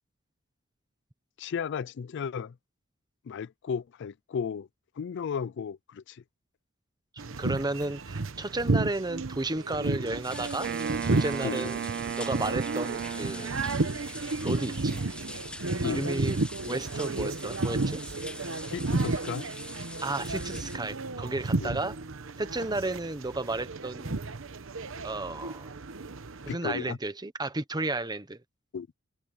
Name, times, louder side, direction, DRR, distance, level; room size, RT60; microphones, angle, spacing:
voice 1, 1.4-2.5 3.3-4.7 5.0-6.2 11.4-11.7 15.8-16.2 18.6-19.4 21.6-21.7 26.5-27.0 28.7-28.9, left 6 dB, 60° left, 0.4 m, -34 dB
sound 1, 7.2-26.5, right 3 dB, 70° right, 1.0 m, -32 dB
voice 2, 7.4-10.7 11.1-11.8 12.2-13.5 14.4-15.0 15.8-16.4 16.6-18.0 20.0-22.0 22.4-24.2 25.0-25.7 26.4-28.4, right 2 dB, 20° right, 1.1 m, -33 dB
sound 2, 10.2-20.8, left 1 dB, 5° left, 0.9 m, -44 dB
Wind instrument woodwind instrument, 10.6-14.1, right 8 dB, 50° right, 0.3 m, -35 dB
head